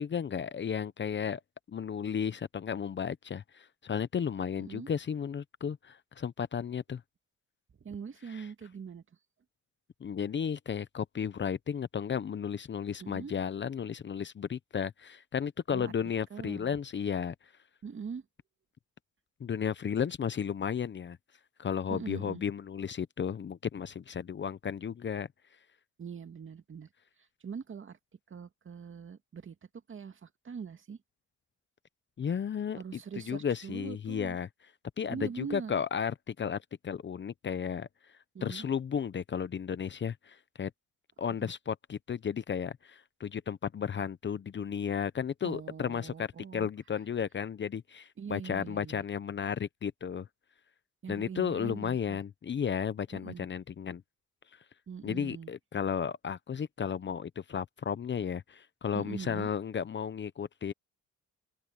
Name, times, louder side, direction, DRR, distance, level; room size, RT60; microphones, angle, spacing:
voice 1, 0.0-1.4 1.7-7.0 8.3-8.5 10.0-17.3 19.4-21.2 21.6-25.3 32.2-33.0 33.3-34.5 35.0-37.9 38.4-40.7 41.2-50.3 51.1-54.0 55.0-60.7, left 7 dB, 40° left, 0.8 m, -34 dB
voice 2, 4.6-4.9 7.8-9.0 13.0-13.3 15.7-15.9 16.3-16.7 17.8-18.2 21.9-22.4 26.0-26.9 27.4-28.0 28.3-29.5 29.9-31.0 32.7-34.4 35.1-35.7 38.3-38.7 41.4-41.5 45.4-46.7 48.2-49.0 51.0-52.2 53.1-53.5 54.9-55.5 58.9-59.5, right 6 dB, 40° right, 2.4 m, -42 dB
open air
cardioid pair, 90°, 30 cm